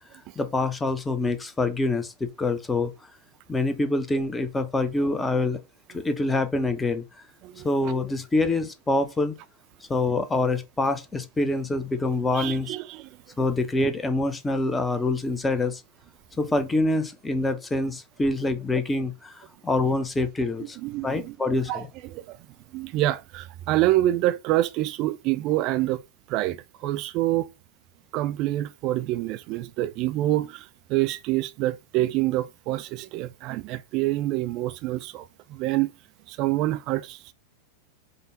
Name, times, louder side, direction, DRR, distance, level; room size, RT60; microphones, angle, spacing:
voice 1, 0.4-2.9 3.5-5.6 5.9-7.0 7.6-9.4 9.9-12.7 13.4-15.8 16.4-20.8 21.0-21.8, left 2 dB, 10° left, 0.7 m, -25 dB
voice 2, 12.3-13.1 20.8-21.4 21.7-22.4 22.7-26.0 26.3-27.5 28.1-35.9 36.3-37.3, right 15 dB, 40° right, 0.3 m, -26 dB
5.3 x 2.3 x 3.9 m
figure-of-eight pair, 90°, 0 cm